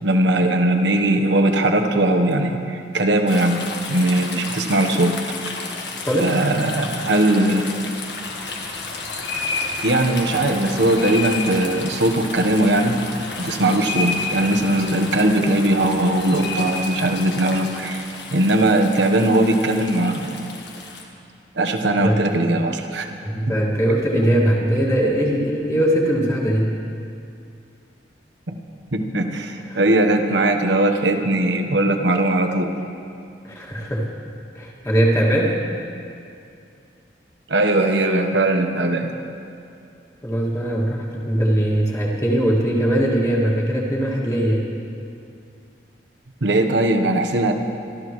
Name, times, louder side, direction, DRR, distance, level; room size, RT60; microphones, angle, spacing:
voice 1, 0.0-3.6 3.9-5.2 6.2-7.7 9.8-13.0 13.4-18.1 18.3-20.4 21.6-23.1 23.5-23.6 28.5-28.6 28.9-32.7 37.5-39.1 46.4-47.5, right 1 dB, 90° right, 5 dB, 1.1 m, -19 dB
sound 1, 3.3-21.0, left 3 dB, 70° left, 1.7 m, -31 dB
voice 2, 6.0-6.4 22.0-22.1 23.2-26.7 29.6-29.8 33.4-34.1 34.5-35.6 40.2-44.6, right 1 dB, 15° left, -3 dB, 2.1 m, -20 dB
25.5 x 13.0 x 3.1 m, 2.6 s
head